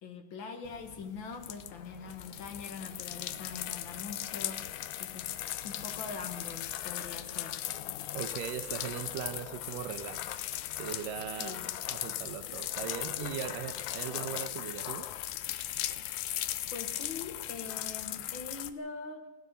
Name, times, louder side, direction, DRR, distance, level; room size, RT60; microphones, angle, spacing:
voice 1, 0.0-5.4 5.6-7.6 11.4-11.7 16.7-19.3, left 4 dB, 45° left, 5 dB, 1.8 m, -43 dB
sound 1, 0.7-18.7, left 13 dB, 75° left, 1.9 m, -38 dB
voice 2, 8.1-10.4 10.8-11.6 11.9-15.1, right 9 dB, 85° right, 10 dB, 2.5 m, -39 dB
17.0 x 12.5 x 6.8 m, 1.2 s
omnidirectional pair, 3.8 m